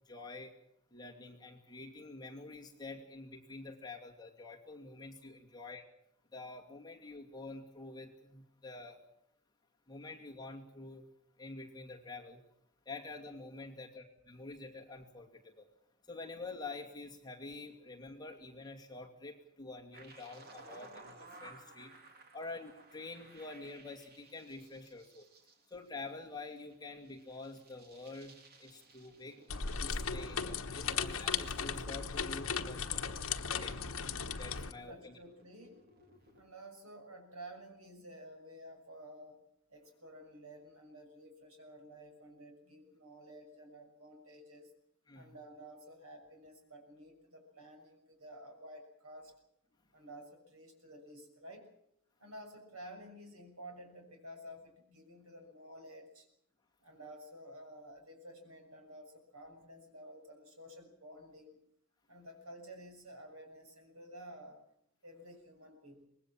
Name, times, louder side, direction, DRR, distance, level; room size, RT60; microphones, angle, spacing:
voice 1, 0.1-0.5 0.9-5.8 6.3-9.0 9.9-11.1 11.4-12.4 12.9-15.7 16.0-22.0 22.3-25.3 25.7-29.4 29.8-33.0 33.5-33.8 34.3-35.2 45.1-45.3, left 3 dB, 20° left, 0 dB, 2.5 m, -47 dB
sound 1, 19.9-36.4, right 2 dB, 45° right, 2.9 m, -58 dB
sound 2, 29.5-34.7, left 6 dB, 65° left, 1.2 m, -36 dB
voice 2, 34.7-35.8 36.3-39.4 39.7-44.7 45.1-49.3 49.9-51.7 52.2-56.3 56.8-61.6 62.1-64.6 65.0-66.1, right 1 dB, 75° right, 4 dB, 6.6 m, -52 dB
24.5 x 20.0 x 7.4 m, 0.74 s
head